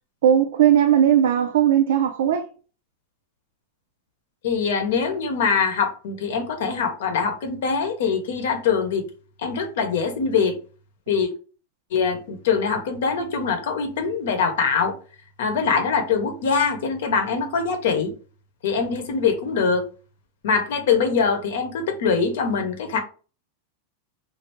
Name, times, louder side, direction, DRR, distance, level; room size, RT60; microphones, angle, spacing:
voice 1, 0.2-2.5, right 10 dB, 80° right, 0.4 m, -18 dB
voice 2, 4.4-9.1 9.4-10.6 11.1-11.3 11.9-15.0 15.4-18.1 18.6-19.9 20.4-23.0, left 5 dB, 75° left, 0.8 m, -23 dB
3.2 x 2.5 x 3.0 m
supercardioid pair, 160°, 0 cm